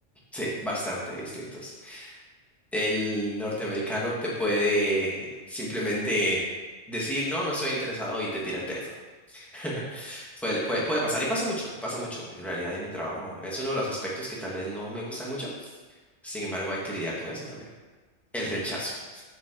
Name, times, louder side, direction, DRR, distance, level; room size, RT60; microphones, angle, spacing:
voice 1, 0.3-2.2 2.7-6.4 6.9-8.8 9.3-15.5 16.2-17.6 18.3-18.9, equal, ahead, -6 dB, 1.4 m, -30 dB
7.1 x 4.6 x 3.8 m, 1.3 s
omnidirectional pair, 1.2 m